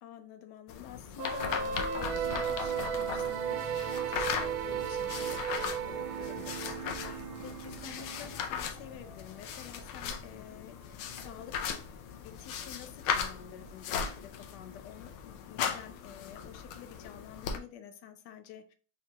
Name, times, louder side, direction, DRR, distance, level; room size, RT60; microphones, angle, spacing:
voice 1, 0.0-11.8 12.2-18.7, left 9 dB, 70° left, 1.1 m, -49 dB
sound 1, 0.7-17.6, left 7 dB, 85° left, 1.5 m, -38 dB
sound 2, 1.2-8.4, right 8 dB, 80° right, 1.3 m, -35 dB
sound 3, 2.0-12.2, left 1 dB, 30° left, 2.2 m, -54 dB
4.6 x 3.6 x 2.9 m
omnidirectional pair, 2.2 m